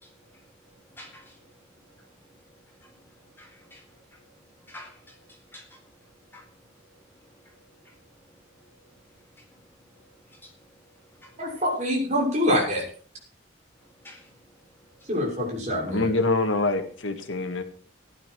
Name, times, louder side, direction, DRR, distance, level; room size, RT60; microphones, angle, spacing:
voice 1, 0.0-0.4 1.0-1.3 1.9-2.0 2.8-3.0 3.4-4.0 4.7-5.2 5.5-5.8 6.3-6.4 7.4-7.5 7.8-7.9 9.4-9.5 10.3-10.5 11.2-11.3 14.0-14.3, left 1 dB, 10° left, 0 dB, 4.3 m, -49 dB
voice 2, 11.4-12.8 15.1-16.1, equal, 40° right, -1 dB, 6.5 m, -25 dB
voice 3, 15.9-17.6, left 2 dB, 90° left, 6 dB, 2.1 m, -25 dB
16.5 x 11.5 x 4.7 m, 0.43 s
head